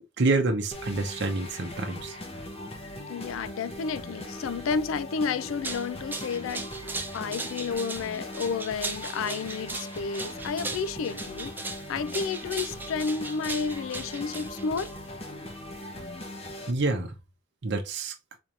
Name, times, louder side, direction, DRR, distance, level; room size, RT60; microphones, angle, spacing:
voice 1, 0.2-2.2 16.7-17.1 17.6-18.1, right 3 dB, 55° right, 0.7 m, -27 dB
sound 1, 0.7-16.7, left 1 dB, 30° left, 0.8 m, -40 dB
voice 2, 3.1-6.7 7.1-14.9, left 5 dB, 75° left, 0.4 m, -31 dB
sound 2, 5.4-15.2, right 3 dB, 10° right, 0.4 m, -38 dB
4.3 x 3.0 x 2.5 m
head